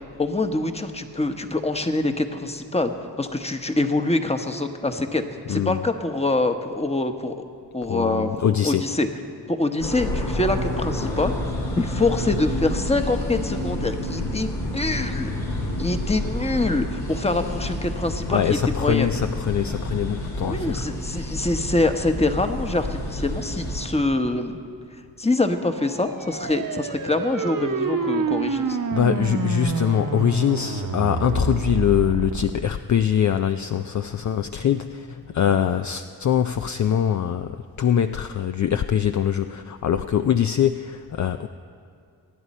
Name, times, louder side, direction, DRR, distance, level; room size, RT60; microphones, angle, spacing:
voice 1, 0.2-5.2 5.5-7.3 7.7-9.1 9.5-11.3 11.8-15.3 15.8-19.1 20.4-24.6 25.2-28.8, left 2 dB, 15° left, 7 dB, 1.1 m, -25 dB
voice 2, 5.5-5.8 7.9-8.8 18.3-20.9 28.9-41.5, left 9 dB, 45° left, 9 dB, 0.5 m, -23 dB
sound 1, 9.8-23.9, left 1 dB, 75° left, 2.4 m, -29 dB
sound 2, 25.7-32.6, right 5 dB, 55° right, 1.1 m, -28 dB
23.5 x 9.8 x 4.3 m, 2.4 s
cardioid pair, 55°, 41 cm